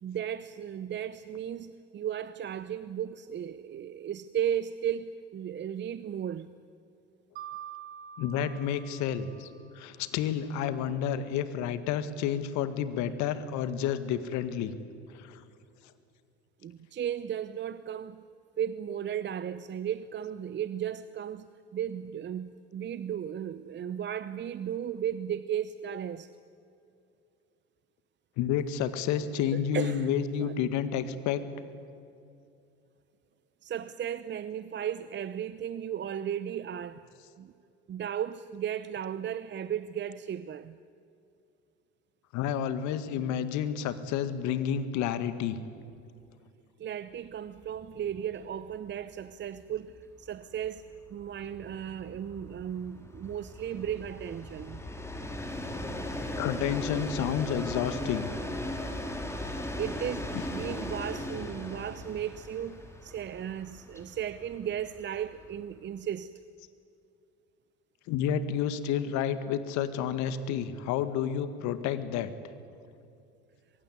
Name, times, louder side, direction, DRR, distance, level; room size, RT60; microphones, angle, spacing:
voice 1, 0.0-6.5 16.6-18.2 18.6-21.5 21.7-26.3 29.5-30.1 30.4-30.5 33.6-37.1 37.4-37.5 37.9-40.8 46.8-50.8 51.1-54.8 59.8-66.3, right 9 dB, 35° right, 0.9 m, -35 dB
Mallet percussion, 7.4-10.1, right 9 dB, 80° right, 2.9 m, -46 dB
voice 2, 8.2-9.5 9.8-14.7 15.1-15.4 28.4-31.4 42.3-45.6 56.4-58.3 68.1-72.3, left 9 dB, 60° left, 1.9 m, -30 dB
Train, 47.6-47.7 48.1-48.2 48.4-65.8, left 1 dB, 10° left, 4.3 m, -38 dB
23.5 x 22.5 x 9.7 m
hypercardioid pair, 70°, 32 cm